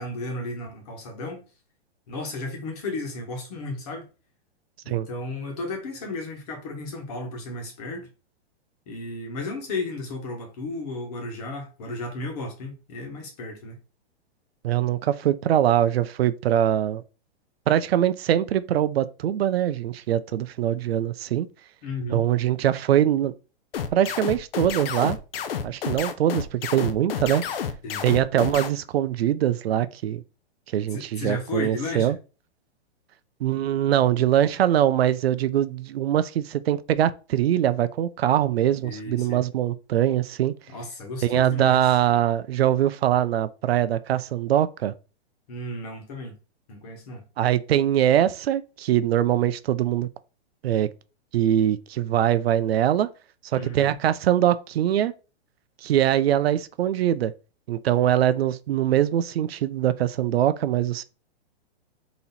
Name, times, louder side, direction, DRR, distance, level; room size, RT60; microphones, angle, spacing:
voice 1, 0.0-1.4 2.1-4.1 4.8-8.1 8.9-13.8 21.8-22.2 27.8-28.1 30.9-32.1 38.8-39.4 40.7-42.0 45.5-46.4 46.7-47.2 53.6-54.0, left 2 dB, 35° left, 1.3 m, -34 dB
voice 2, 14.6-17.0 17.7-21.5 22.1-23.3 23.9-25.2 25.6-27.4 28.0-30.2 30.7-32.2 33.4-40.5 41.2-44.9 47.4-50.1 50.6-50.9 51.3-53.1 53.5-55.1 55.8-57.3 57.7-61.0, right 11 dB, 70° right, 0.5 m, -22 dB
sound 1, 23.7-28.7, left 7 dB, 60° left, 0.7 m, -30 dB
4.1 x 2.9 x 4.1 m
hypercardioid pair, 170°, 32 cm